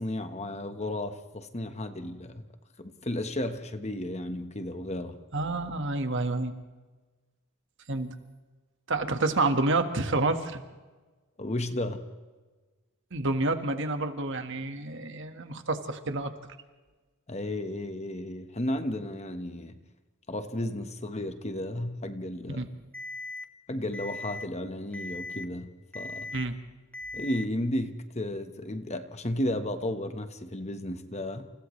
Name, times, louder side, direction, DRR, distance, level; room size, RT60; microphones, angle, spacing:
voice 1, 0.0-2.4 2.8-5.2 11.4-12.0 17.3-19.8 20.3-22.7 23.7-25.7 25.9-26.3 27.1-31.5, left 1 dB, 30° left, 8 dB, 1.2 m, -33 dB
voice 2, 5.3-6.5 7.9-8.1 8.9-10.6 13.1-16.3 22.5-22.7 26.3-26.6, right 2 dB, 55° right, 7 dB, 1.6 m, -28 dB
Alarm, 22.9-23.4 23.9-24.4 24.9-25.4 25.9-26.4 26.9-27.4, left 2 dB, 5° left, 1.3 m, -38 dB
29.5 x 29.0 x 3.3 m, 1.3 s
head